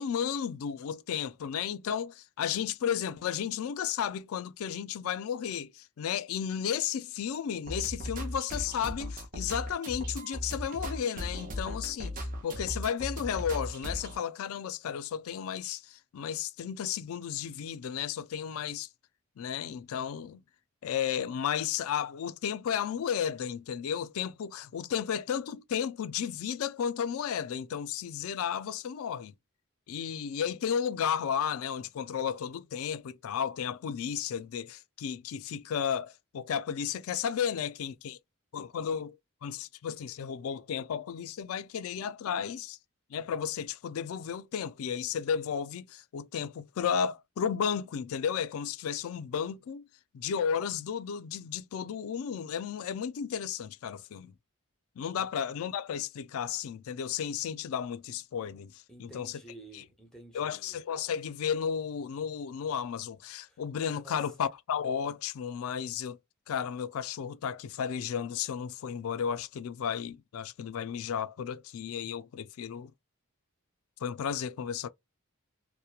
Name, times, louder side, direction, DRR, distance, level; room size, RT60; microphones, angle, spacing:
voice 1, 0.0-18.9 19.4-20.4 20.8-29.3 29.9-38.2 38.5-39.2 39.4-42.8 43.1-49.8 50.1-54.3 55.0-59.3 59.7-59.8 60.3-66.2 66.5-72.9 74.0-74.9, left 8 dB, 70° left, 0.3 m, -33 dB
sound 1, 7.7-14.2, equal, 35° right, 0.6 m, -37 dB
voice 2, 58.9-60.8 63.5-63.6 64.0-64.2, right 1 dB, 5° left, 0.8 m, -51 dB
2.8 x 2.1 x 2.2 m
head